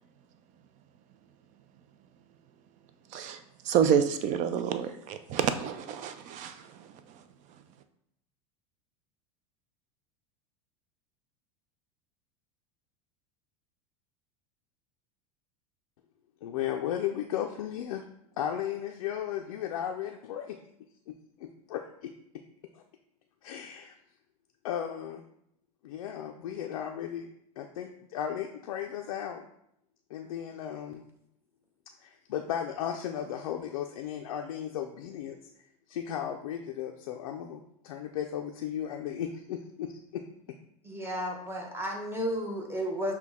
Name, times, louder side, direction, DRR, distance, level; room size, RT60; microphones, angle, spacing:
voice 1, 3.6-6.7, right 8 dB, 45° right, 10 dB, 0.5 m, -28 dB
voice 2, 16.4-18.0 18.4-20.6 21.1-21.2 21.4-22.1 23.4-23.9 24.6-25.2 25.8-27.3 27.6-29.4 30.1-31.0 32.0-35.4 35.9-40.2, left 10 dB, 85° left, 2 dB, 0.4 m, -35 dB
voice 3, 40.8-43.1, equal, 15° right, 0 dB, 1.1 m, -33 dB
5.8 x 2.2 x 3.5 m, 0.75 s
hypercardioid pair, 110°, 18 cm